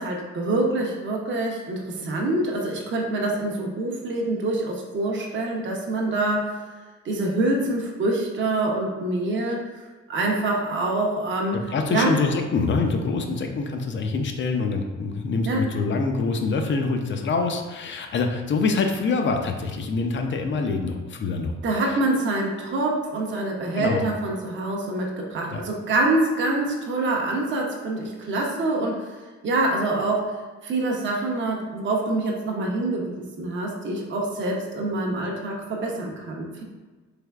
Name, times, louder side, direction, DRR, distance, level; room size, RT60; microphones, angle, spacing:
voice 1, 0.0-6.6 7.0-9.7 10.1-11.6 11.9-12.1 15.5-15.6 21.6-29.1 29.4-30.4 30.6-36.6, right 2 dB, 40° right, -1 dB, 0.6 m, -25 dB
voice 2, 11.7-21.5 21.9-22.0 23.8-24.0 25.5-25.6, left 4 dB, 40° left, 4 dB, 0.4 m, -25 dB
3.3 x 3.1 x 2.3 m, 1.3 s
cardioid pair, 90°, 30 cm